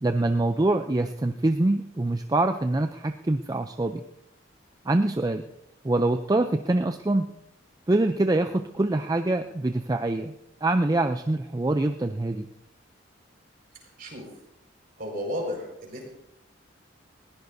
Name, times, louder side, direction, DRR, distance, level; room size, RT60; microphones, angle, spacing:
voice 1, 0.0-4.0 4.9-5.4 5.8-7.3 7.9-10.3 10.6-12.5, right 2 dB, 20° right, 7 dB, 0.4 m, -24 dB
voice 2, 15.0-16.0, equal, 45° right, 0 dB, 4.9 m, -33 dB
20.0 x 16.0 x 2.7 m, 0.83 s
head